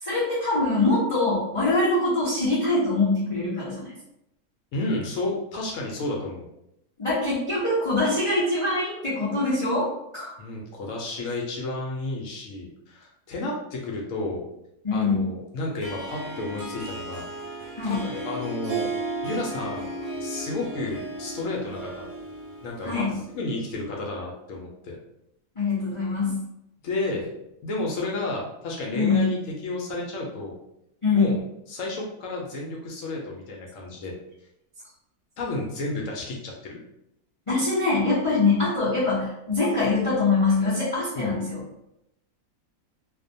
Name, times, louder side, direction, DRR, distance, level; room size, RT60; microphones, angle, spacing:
voice 1, 0.0-3.9 7.0-10.3 14.8-15.3 17.8-18.0 22.8-23.2 25.6-26.4 28.9-29.3 31.0-31.3 37.5-41.6, left 3 dB, 45° left, -10 dB, 0.4 m, -23 dB
voice 2, 4.7-6.5 10.4-14.5 14.9-17.3 17.8-18.9 19.2-19.9 20.2-22.1 22.6-25.0 26.8-27.3 27.6-30.5 31.1-31.4 31.7-34.1 35.4-36.8 41.2-41.3, left 2 dB, 70° left, -1 dB, 0.8 m, -31 dB
Harp, 15.8-23.5, right 2 dB, 75° right, 1.0 m, -35 dB
2.5 x 2.1 x 2.6 m, 0.81 s
omnidirectional pair, 1.6 m